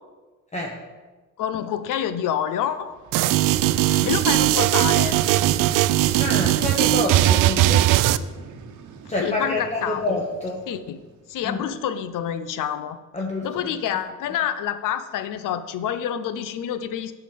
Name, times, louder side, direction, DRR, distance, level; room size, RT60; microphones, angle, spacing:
voice 1, 1.4-2.9 3.9-5.2 9.2-10.0 10.7-11.0 11.3-13.0 13.4-17.1, left 9 dB, 80° left, 12 dB, 0.8 m, -27 dB
Vehicle, 2.8-11.7, right 5 dB, 65° right, 1.1 m, -42 dB
sound 1, 3.1-8.2, right 14 dB, 85° right, 0.5 m, -19 dB
voice 2, 3.7-4.2 6.2-8.0 9.1-10.6 11.4-11.6 13.1-13.5, left 2 dB, 20° left, -1 dB, 1.3 m, -28 dB
9.0 x 5.8 x 6.7 m, 1.3 s
cardioid pair, 100°, 32 cm